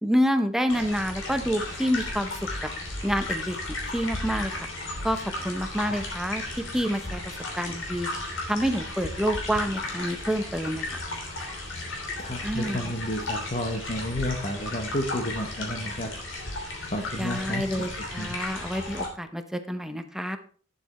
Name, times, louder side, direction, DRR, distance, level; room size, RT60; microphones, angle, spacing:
voice 1, 0.0-2.3 2.6-2.7 3.0-3.6 3.9-4.7 5.0-7.2 7.6-8.1 8.5-11.0 12.4-12.9 17.2-20.4, equal, ahead, 8 dB, 0.8 m, -28 dB
sound 1, 0.7-19.1, left 2 dB, 75° left, 3.1 m, -34 dB
voice 2, 12.2-16.1 16.9-18.4, left 1 dB, 35° left, 2 dB, 1.1 m, -31 dB
9.3 x 7.8 x 4.3 m, 0.44 s
head